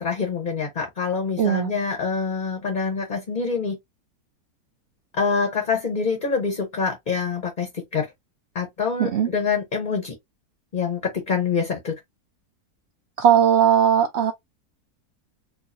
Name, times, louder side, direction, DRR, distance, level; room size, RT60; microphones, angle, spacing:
voice 1, 0.0-3.8 5.1-8.1 8.5-10.1 10.7-11.9, left 5 dB, 35° left, 1.0 m, -25 dB
voice 2, 1.4-1.7 9.0-9.3 13.2-14.3, right 9 dB, 75° right, 0.6 m, -18 dB
4.6 x 2.5 x 2.6 m
omnidirectional pair, 1.7 m